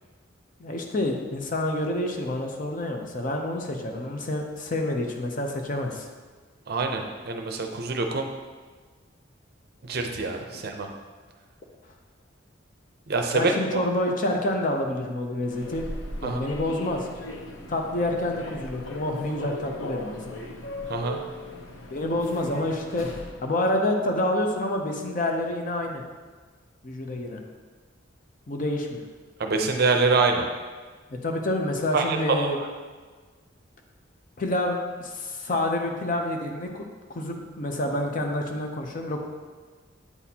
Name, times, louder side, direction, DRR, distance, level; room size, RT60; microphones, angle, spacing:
voice 1, 0.6-6.1 13.3-15.8 16.2-17.1 17.7-20.4 21.9-23.1 23.4-26.0 26.8-27.4 28.5-29.0 31.2-32.6 34.4-36.8 37.1-39.2, left 1 dB, 40° left, 2 dB, 0.6 m, -28 dB
voice 2, 6.7-8.3 9.8-10.9 13.1-13.8 16.2-16.5 20.9-21.2 29.4-30.5 31.9-32.7, right 3 dB, 50° right, 4 dB, 0.6 m, -25 dB
Human voice / Subway metro underground, 15.4-23.4, left 1 dB, 85° left, 0.7 m, -38 dB
8.3 x 4.2 x 2.8 m, 1.4 s
head